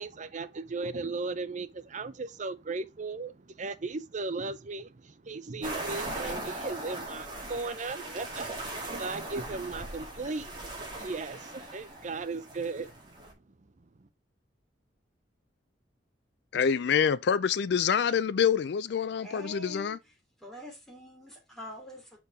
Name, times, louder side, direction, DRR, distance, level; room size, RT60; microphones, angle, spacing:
voice 1, 0.0-13.2 14.0-14.1, right 3 dB, 40° right, 0.6 m, -37 dB
sound 1, 5.6-13.3, right 2 dB, 25° right, 2.0 m, -39 dB
voice 2, 16.5-20.0, left 7 dB, 65° left, 0.4 m, -26 dB
voice 3, 19.2-20.0 20.4-22.2, left 1 dB, ahead, 3.0 m, -45 dB
5.2 x 4.7 x 4.8 m
head